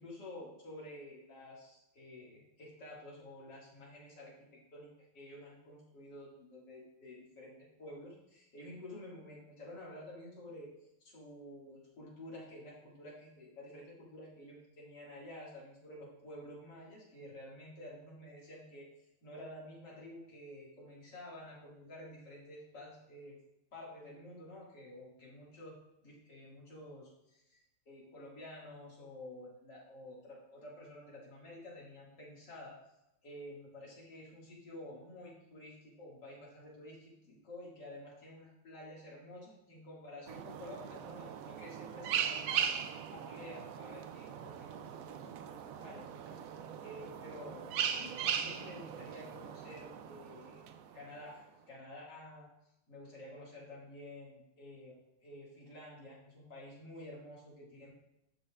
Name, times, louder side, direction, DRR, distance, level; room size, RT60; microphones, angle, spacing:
voice 1, 0.0-10.7 11.0-18.8 19.2-23.4 23.7-32.7 33.2-46.5 46.8-50.6 50.9-52.5 52.9-57.9, left 1 dB, 85° left, -5 dB, 2.7 m, -51 dB
sound 1, 40.3-51.2, right 8 dB, 70° right, 0.8 m, -39 dB
12.0 x 5.5 x 2.4 m, 0.87 s
omnidirectional pair, 1.9 m